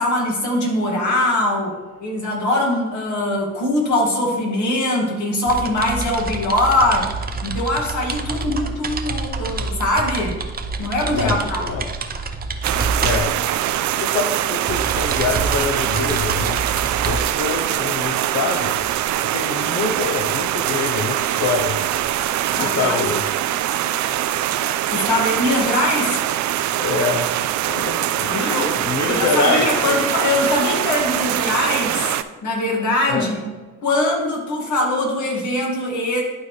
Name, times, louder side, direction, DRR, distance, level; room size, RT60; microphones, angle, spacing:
voice 1, 0.0-1.7 2.0-7.0 7.4-10.4 10.8-11.9 22.5-23.0 24.9-26.2 27.9-28.0 28.3-28.8 29.0-32.1 32.4-33.4 33.8-36.2, left 1 dB, 75° left, -1 dB, 2.1 m, -22 dB
sound 1, 5.5-19.2, right 3 dB, 30° right, 0.7 m, -28 dB
voice 2, 11.1-11.9 12.7-13.3 13.9-16.7 17.0-18.8 19.2-21.8 22.5-23.2 23.8-23.9 26.7-27.3 27.7-30.0 33.1-33.3, left 4 dB, 55° left, 2 dB, 0.8 m, -25 dB
sound 2, 12.6-32.2, right 12 dB, 70° right, 0.4 m, -23 dB
11.0 x 4.0 x 3.2 m, 1.3 s
cardioid pair, 90°, 30 cm